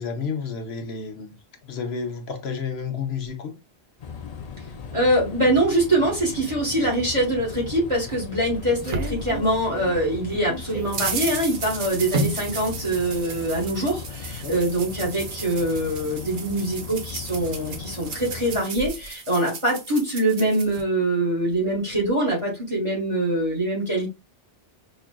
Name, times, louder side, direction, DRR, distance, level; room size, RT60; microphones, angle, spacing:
voice 1, 0.0-1.3 1.6-3.5 14.4-14.6, left 5 dB, 65° left, 1.0 m, -31 dB
sound 1, 4.0-18.6, left 5 dB, 50° left, 0.5 m, -38 dB
voice 2, 4.9-24.1, right 1 dB, 30° right, 1.3 m, -24 dB
sound 2, 8.1-9.9 10.3-20.8, right 3 dB, 55° right, 0.8 m, -33 dB
5.4 x 2.4 x 2.2 m
omnidirectional pair, 1.1 m